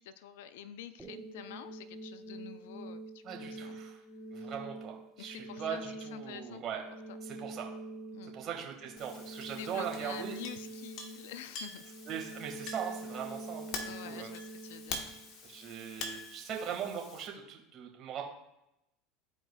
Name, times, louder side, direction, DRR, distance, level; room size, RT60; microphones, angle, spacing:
voice 1, 0.0-3.8 4.4-4.5 5.2-5.8 6.1-6.6 7.1-7.2 8.1-8.3 9.5-11.8 13.8-15.1 15.4-15.7, left 10 dB, 75° left, 13 dB, 0.5 m, -48 dB
sound 1, 1.0-16.0, right 2 dB, 10° right, 1.3 m, -46 dB
voice 2, 3.2-4.0 4.3-6.8 7.2-7.6 8.3-10.4 12.0-14.3 15.4-18.2, right 8 dB, 45° right, 1 dB, 1.7 m, -40 dB
Chink clink, 9.0-17.3, left 3 dB, 50° left, 1.2 m, -45 dB
12.5 x 4.5 x 2.3 m, 0.86 s
hypercardioid pair, 90°, 0 cm